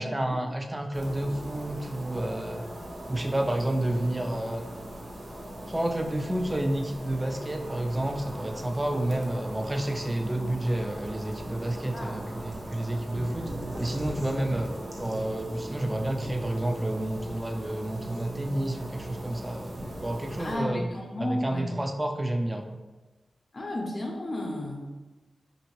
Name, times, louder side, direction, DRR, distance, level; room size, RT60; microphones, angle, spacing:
voice 1, 0.0-2.6 3.1-4.7 5.7-13.5 13.8-14.7 15.0-19.8 20.0-20.9 21.2-22.8, right 1 dB, 20° right, 4 dB, 0.3 m, -30 dB
sound 1, 0.9-20.6, right 1 dB, 60° right, 0.8 m, -38 dB
voice 2, 11.9-12.2 20.4-21.7 23.5-24.9, left 1 dB, 55° left, -1 dB, 0.6 m, -33 dB
2.6 x 2.6 x 3.0 m, 1.2 s
cardioid pair, 50°, 0 cm